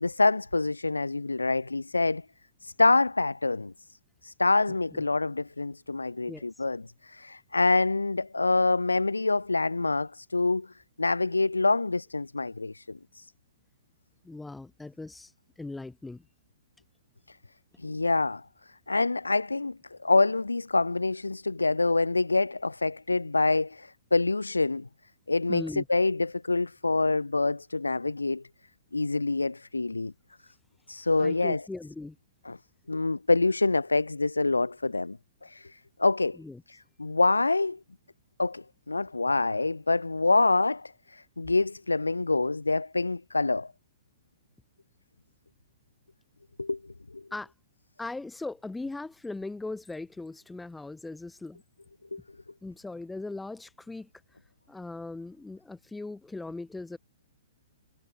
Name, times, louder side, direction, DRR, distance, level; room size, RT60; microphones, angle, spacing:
voice 1, 0.0-2.2 2.6-3.7 4.2-10.7 11.0-13.3 17.3-17.4 17.8-18.4 18.9-24.9 25.3-28.4 28.9-30.1 30.9-31.6 32.5-32.6 32.9-35.2 35.4-36.4 36.7-37.8 38.4-43.7 46.6-46.8 47.1-47.2 52.1-52.2, left 3 dB, 80° left, 0.6 m, -26 dB
voice 2, 14.2-16.3 25.5-25.9 31.2-32.2 36.4-36.6 47.3-47.5 48.0-51.6 52.6-54.1 54.7-57.0, left 2 dB, 5° left, 5.0 m, -39 dB
figure-of-eight pair, 115°, 0 cm